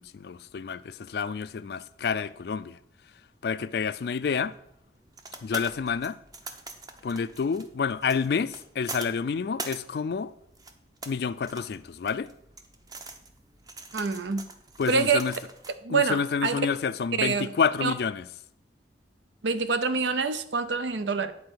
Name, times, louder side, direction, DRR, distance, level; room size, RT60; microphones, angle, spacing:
voice 1, 0.0-2.8 3.4-4.5 5.4-6.2 7.0-10.3 11.1-12.3 14.8-15.3 15.9-18.3, left 6 dB, 60° left, 0.3 m, -29 dB
sound 1, 4.0-15.8, right 3 dB, 20° right, 0.6 m, -43 dB
voice 2, 13.9-14.4 14.9-15.2 15.8-16.6 17.2-17.5 17.8-17.9 19.4-21.3, right 4 dB, 80° right, 0.6 m, -26 dB
8.6 x 4.3 x 6.2 m
head